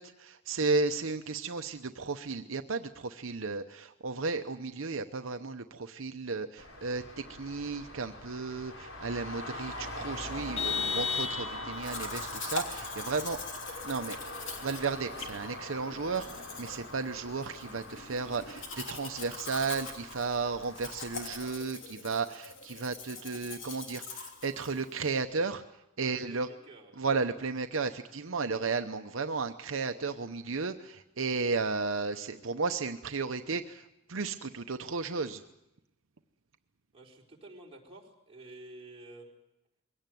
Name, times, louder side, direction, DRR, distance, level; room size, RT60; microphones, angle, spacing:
voice 1, 0.0-13.4 13.8-14.2 14.6-25.6 26.0-26.5 27.0-35.4, right 4 dB, 75° right, 7 dB, 0.8 m, -34 dB
Traffic noise roadway noise, 6.6-21.5, left 1 dB, 90° left, 4.6 m, -43 dB
Vehicle horn car horn honking, 10.6-12.0, left 6 dB, 30° left, 0.9 m, -32 dB
Domestic sounds home sounds, 11.8-25.2, left 4 dB, 65° left, 3.3 m, -43 dB
voice 2, 26.0-27.0 36.9-39.3, right 2 dB, 30° right, -2 dB, 4.3 m, -50 dB
22.5 x 17.5 x 9.2 m, 0.92 s
head